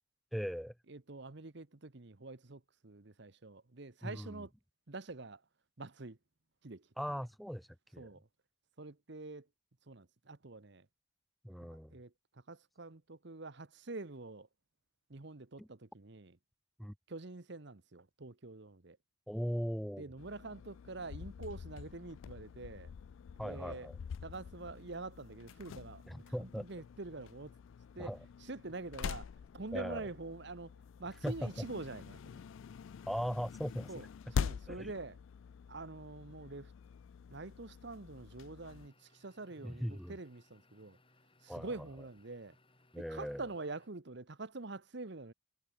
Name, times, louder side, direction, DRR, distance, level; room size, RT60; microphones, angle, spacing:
voice 1, 0.3-0.7 4.0-4.4 7.0-8.1 11.4-12.0 15.6-15.7 16.8-16.9 19.3-20.0 23.4-24.0 26.1-26.7 28.0-28.2 29.7-30.1 31.2-31.5 33.1-34.0 34.7-34.9 39.6-40.2 41.5-41.7 42.9-43.4, equal, ahead, 1.5 m, -39 dB
voice 2, 0.9-4.5 4.9-5.4 5.8-6.2 6.6-6.9 8.0-8.3 8.8-9.5 9.9-10.9 11.9-14.5 15.1-16.4 17.1-19.0 20.0-22.9 23.4-23.9 24.2-26.0 26.4-27.5 27.9-29.3 29.5-30.7 31.0-32.4 33.9-34.0 34.3-35.2 35.7-36.7 37.3-41.0 41.4-42.5 43.0-45.3, right 3 dB, 55° right, 1.0 m, -46 dB
sound 1, 20.2-38.9, left 6 dB, 65° left, 0.3 m, -45 dB
sound 2, 38.7-43.9, left 2 dB, 25° left, 7.9 m, -68 dB
head